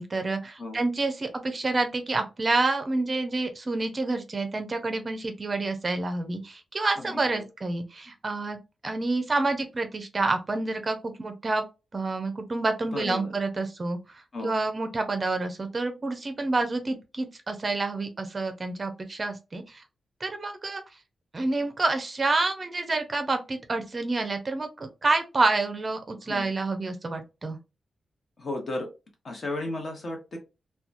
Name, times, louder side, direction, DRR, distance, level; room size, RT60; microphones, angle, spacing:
voice 1, 0.0-8.6 8.8-11.6 11.9-14.0 14.4-19.8 20.2-20.8 21.3-27.6, right 3 dB, 30° right, 7 dB, 0.5 m, -28 dB
voice 2, 7.0-7.5 12.9-13.3 14.3-14.6 26.3-26.5 28.4-28.9 29.2-30.4, left 2 dB, 40° left, 2 dB, 0.9 m, -34 dB
2.8 x 2.2 x 2.4 m, 0.27 s
wide cardioid pair, 170°, 0 cm